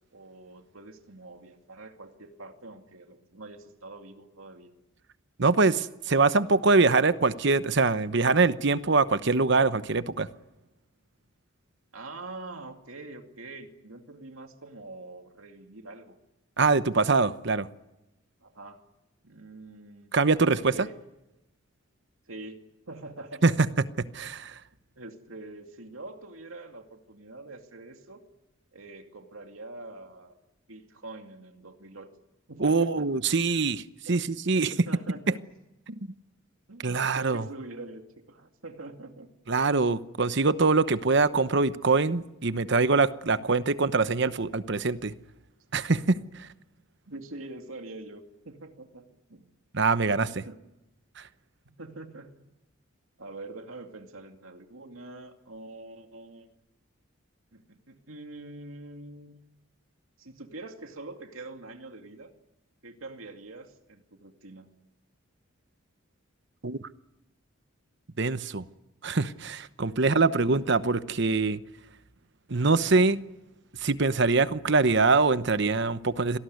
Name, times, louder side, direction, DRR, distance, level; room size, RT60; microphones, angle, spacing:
voice 1, 0.1-4.7 11.9-16.2 18.4-18.8 19.2-20.1 20.6-21.0 22.3-23.5 24.0-24.2 25.0-28.2 28.7-30.4 30.7-32.1 32.5-33.2 34.1-34.2 34.7-35.4 36.7-39.3 47.1-49.5 50.3-50.6 51.6-52.3 53.2-56.5 57.5-59.4 60.2-62.3 62.8-64.7 70.2-70.3 73.0-73.1, right 2 dB, 85° right, 2.4 m, -44 dB
voice 2, 5.4-10.3 16.6-17.7 20.1-20.7 23.4-23.5 24.0-24.5 32.6-33.8 34.1-34.7 35.9-36.0 36.8-37.4 39.5-45.1 45.7-46.5 49.7-50.4 66.6-66.8 68.2-68.6 69.0-71.6 72.5-73.2 73.8-76.4, right 3 dB, 55° right, 1.0 m, -24 dB
26.5 x 18.5 x 9.5 m
head